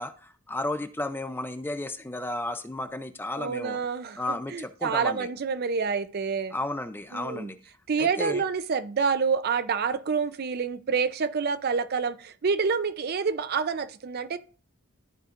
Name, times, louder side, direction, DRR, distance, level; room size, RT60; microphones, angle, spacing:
voice 1, 0.0-3.8 4.2-5.3 6.5-7.6 8.0-8.4, left 2 dB, 10° left, 0.4 m, -33 dB
voice 2, 3.4-6.6 7.1-7.5 7.9-14.4, right 5 dB, 45° right, 0.5 m, -28 dB
13.0 x 4.7 x 2.5 m
head